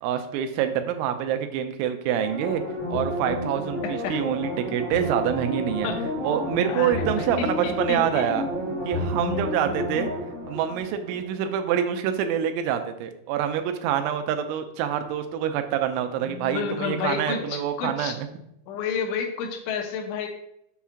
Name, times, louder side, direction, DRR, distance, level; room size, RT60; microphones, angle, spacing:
voice 1, 0.0-2.6 2.9-5.9 6.2-8.5 8.9-10.1 10.5-18.3, right 9 dB, 85° right, 7 dB, 3.0 m, -26 dB
sound 1, 2.2-11.6 11.9-12.0, left 1 dB, 30° left, 1.0 m, -31 dB
voice 2, 3.8-4.2 5.8-6.0 6.7-8.3 16.2-18.1 18.7-20.3, left 6 dB, 85° left, 3 dB, 2.5 m, -30 dB
7.1 x 2.4 x 5.6 m, 0.78 s
omnidirectional pair, 5.5 m